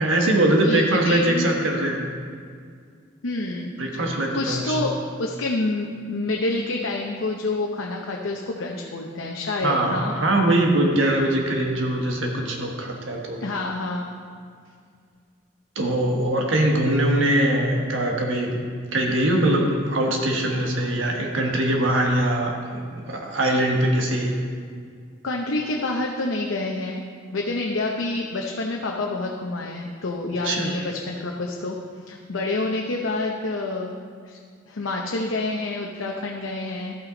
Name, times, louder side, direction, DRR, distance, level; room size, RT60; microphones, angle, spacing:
voice 1, 0.0-2.1 3.8-4.8 9.6-13.4 15.7-18.6 18.9-24.3 30.4-30.7, right 1 dB, 80° right, 0 dB, 1.4 m, -22 dB
voice 2, 0.6-1.5 3.2-3.7 4.0-4.9 5.2-10.2 13.4-14.1 25.2-27.0 27.3-31.8 32.1-33.9 34.3-34.4 34.7-37.0, left 2 dB, 85° left, -1 dB, 0.7 m, -28 dB
13.0 x 5.9 x 3.9 m, 2.1 s
head